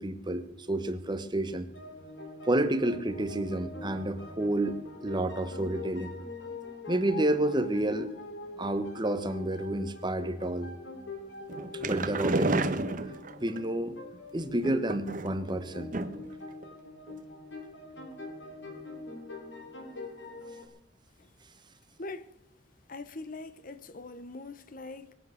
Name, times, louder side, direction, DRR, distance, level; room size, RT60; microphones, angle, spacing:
voice 1, 0.0-1.7 2.4-6.1 6.9-8.1 8.6-10.7 11.7-12.7 13.4-14.0 14.3-15.9, right 1 dB, 25° right, 1.2 m, -30 dB
sound 1, 1.7-20.7, left 2 dB, 85° left, 3.5 m, -44 dB
sound 2, 11.5-13.6 14.6-15.5 15.9-16.3 16.6-16.7 17.1-17.2, right 2 dB, 45° right, 1.1 m, -31 dB
voice 2, 22.0-22.3 22.9-25.1, left 3 dB, 50° left, 1.0 m, -42 dB
23.0 x 8.6 x 6.6 m
head